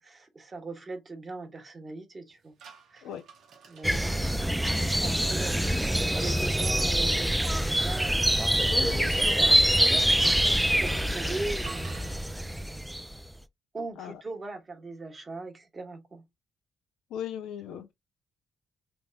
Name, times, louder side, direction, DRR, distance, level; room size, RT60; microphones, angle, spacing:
voice 1, 0.0-2.5 2.9-3.0 3.7-4.1 4.9-8.7 10.1-12.2 13.7-16.3 17.7-17.8, right 3 dB, 30° right, 1.2 m, -40 dB
sound 1, 2.6-4.5 5.4-10.6 11.6-12.3, right 6 dB, 75° right, 1.0 m, -45 dB
sound 2, 3.8-13.2, right 1 dB, 5° right, 0.4 m, -25 dB
voice 2, 8.7-9.5 10.2-10.3 14.0-14.2 17.1-17.9, left 9 dB, 85° left, 0.6 m, -38 dB
3.4 x 3.0 x 2.3 m
cardioid pair, 90°, 0 cm